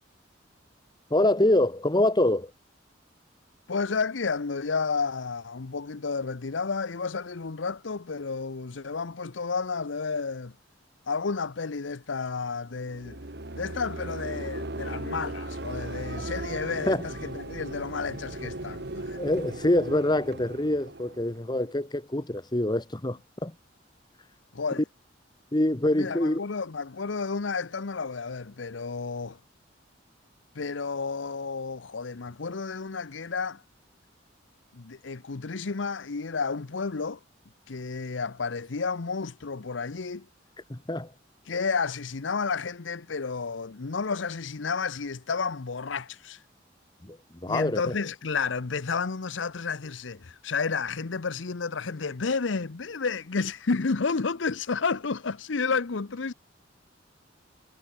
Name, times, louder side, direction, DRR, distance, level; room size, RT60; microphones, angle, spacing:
voice 1, 1.1-2.5 16.9-17.0 19.2-23.5 24.8-24.9 25.5-26.4 40.7-41.1 47.0-47.9, left 1 dB, 20° left, 1.2 m, -25 dB
voice 2, 3.7-10.5 11.1-13.2 13.5-19.2 24.5-24.8 25.9-29.4 30.5-33.6 34.7-37.2 37.7-40.3 41.5-46.4 47.5-56.3, left 4 dB, 80° left, 0.8 m, -31 dB
sound 1, 12.8-21.9, right 2 dB, 60° right, 2.0 m, -37 dB
head